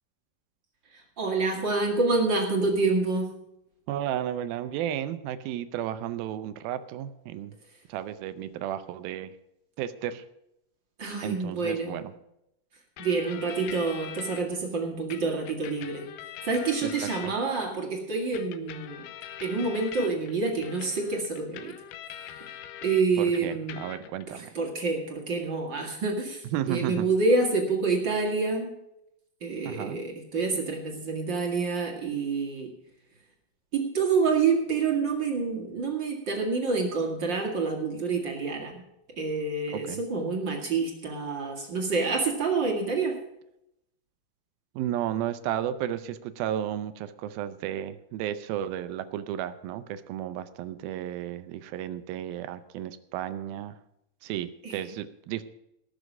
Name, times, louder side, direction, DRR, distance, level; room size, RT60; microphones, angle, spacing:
voice 1, 0.9-3.3 11.0-12.1 13.0-16.1 16.4-19.0 19.4-21.7 22.2-22.5 22.8-23.8 24.3-28.7 29.4-32.7 33.7-38.8 39.2-43.2 54.6-54.9, right 4 dB, 40° right, 1 dB, 2.0 m, -28 dB
voice 2, 3.9-7.6 7.9-9.3 9.8-10.2 11.2-12.1 16.8-17.3 23.2-24.5 26.5-27.1 29.6-30.0 39.7-40.0 44.8-53.8 54.2-55.4, right 11 dB, 75° right, 12 dB, 2.3 m, -33 dB
sound 1, 13.0-14.4 15.1-17.7 18.3-23.0 23.3-24.2, left 11 dB, 85° left, 2.9 m, -43 dB
18.5 x 6.9 x 6.1 m, 0.82 s
omnidirectional pair, 4.7 m